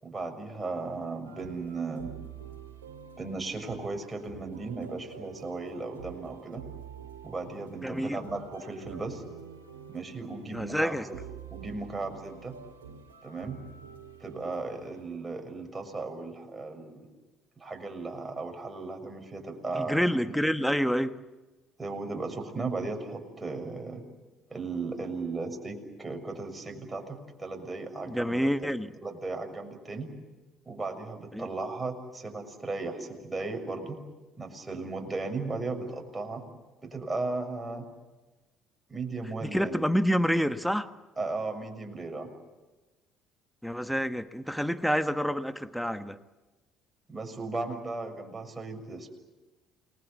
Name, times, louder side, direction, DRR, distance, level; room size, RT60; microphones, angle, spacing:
voice 1, 0.0-2.1 3.2-6.6 7.2-9.2 9.9-11.2 11.5-12.6 13.2-13.6 14.2-17.1 17.6-20.0 20.3-20.4 21.8-24.0 24.5-28.7 29.0-30.1 30.6-34.0 34.4-36.4 36.8-37.9 38.9-39.8 41.2-42.3 47.1-49.1, right 3 dB, 20° right, 4 dB, 6.7 m, -36 dB
sound 1, 1.2-15.0, right 8 dB, 85° right, 2.2 m, -47 dB
voice 2, 7.8-8.2 10.5-11.0 19.7-21.2 28.1-28.9 31.3-31.5 39.4-40.9 43.6-46.2, equal, ahead, 11 dB, 1.3 m, -28 dB
29.0 x 21.0 x 8.3 m, 1.2 s
hypercardioid pair, 55°, 0 cm